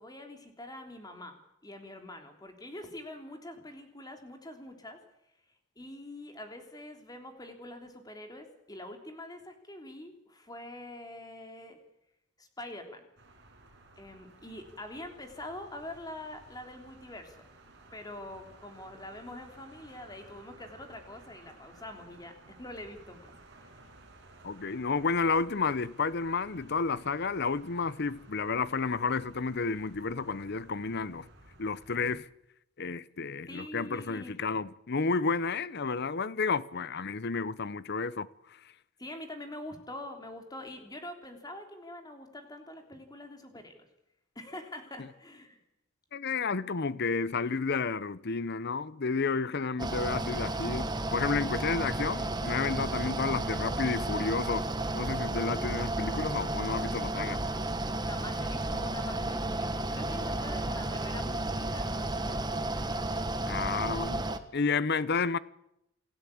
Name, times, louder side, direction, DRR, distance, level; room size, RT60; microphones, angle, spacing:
voice 1, 0.0-5.0 5.8-11.8 12.4-13.1 14.0-17.4 17.9-23.3 33.5-34.4 39.0-43.9 44.4-45.6 58.0-62.9, left 1 dB, 20° left, 3.5 m, -45 dB
sound 1, 13.2-32.2, right 2 dB, 60° right, 5.8 m, -56 dB
voice 2, 24.4-31.3 31.6-32.3 32.8-38.3 46.1-54.7 54.9-57.4 63.5-64.2 64.5-65.4, left 4 dB, 55° left, 0.8 m, -31 dB
Mechanical fan, 49.8-64.4, right 2 dB, 20° right, 1.4 m, -32 dB
28.5 x 15.5 x 8.6 m
head